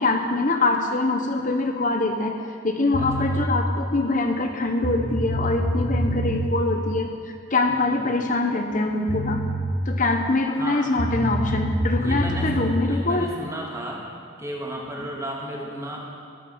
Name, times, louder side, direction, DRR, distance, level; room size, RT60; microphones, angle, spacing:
voice 1, 0.0-2.4 2.6-9.4 9.9-13.3 15.0-15.1, left 2 dB, 40° left, 4 dB, 0.9 m, -24 dB
sound 1, 2.9-3.5 4.5-4.6 4.8-6.5 8.7-8.8 9.1-9.7 11.0-12.7, equal, 65° left, 2.4 m, -26 dB
voice 2, 3.0-3.3 7.7-8.1 10.5-10.9 11.9-14.1 14.4-16.0, right 1 dB, 15° right, -2 dB, 2.1 m, -34 dB
14.0 x 11.0 x 7.2 m, 2.2 s
head